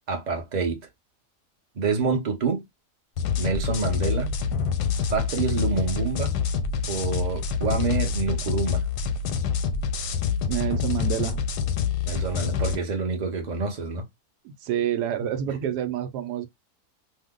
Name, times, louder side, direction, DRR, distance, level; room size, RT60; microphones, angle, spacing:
voice 1, 0.1-0.8 1.8-2.6 3.4-4.3 5.1-6.3 6.9-8.8 12.1-14.0 15.5-15.7, right 4 dB, 40° right, 0.7 m, -27 dB
sound 1, 3.2-12.7, left 6 dB, 85° left, 1.2 m, -26 dB
voice 2, 10.5-11.4 14.4-16.5, right 10 dB, 80° right, 1.2 m, -28 dB
2.8 x 2.0 x 3.6 m
omnidirectional pair, 1.7 m